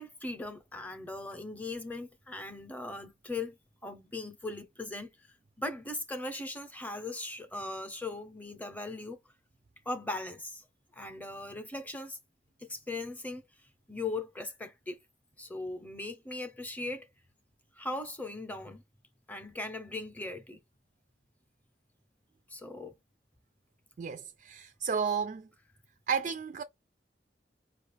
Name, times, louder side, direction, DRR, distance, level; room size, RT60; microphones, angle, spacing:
voice 1, 0.0-3.6 3.8-5.3 5.6-9.2 9.9-10.6 10.9-12.2 12.6-13.4 13.9-15.0 15.4-17.1 17.8-18.8 19.3-20.6 22.5-22.9, left 2 dB, 10° left, 0.6 m, -39 dB
voice 2, 24.0-25.5 26.1-26.6, right 6 dB, 45° right, 0.3 m, -32 dB
5.1 x 2.4 x 3.3 m
head